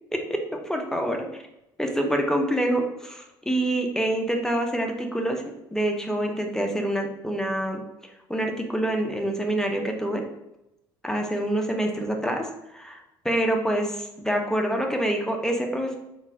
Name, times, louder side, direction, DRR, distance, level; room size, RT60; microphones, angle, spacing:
voice 1, 0.1-1.4 1.8-5.4 5.7-7.8 8.3-10.2 11.0-12.5 12.7-13.0 13.2-15.9, right 1 dB, 5° left, 2 dB, 0.7 m, -26 dB
3.7 x 2.4 x 2.8 m, 0.88 s
hypercardioid pair, 55°, 12 cm